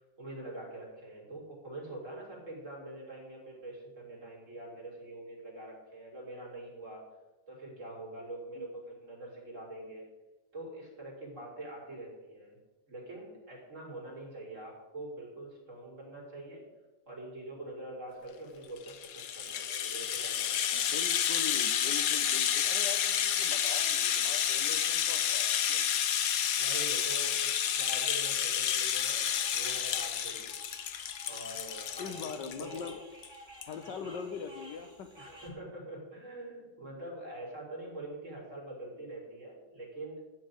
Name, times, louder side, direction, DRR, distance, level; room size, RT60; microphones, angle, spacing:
voice 1, 0.2-7.0 7.5-10.0 10.5-12.6 12.9-16.6 17.1-20.9 26.6-30.5 31.3-32.8 34.0-34.3 35.2-40.2, right 1 dB, 45° right, -4 dB, 4.5 m, -44 dB
Rattle (instrument), 18.8-32.9 33.2-33.3 33.6-33.7, left 9 dB, 65° left, 1.1 m, -30 dB
voice 2, 20.7-25.9 32.0-33.0 33.7-35.1, left 6 dB, 90° left, 8 dB, 1.7 m, -42 dB
sound 1, 28.9-35.5, right 1 dB, 15° right, 2.8 m, -53 dB
14.0 x 4.8 x 9.0 m, 1.1 s
omnidirectional pair, 1.9 m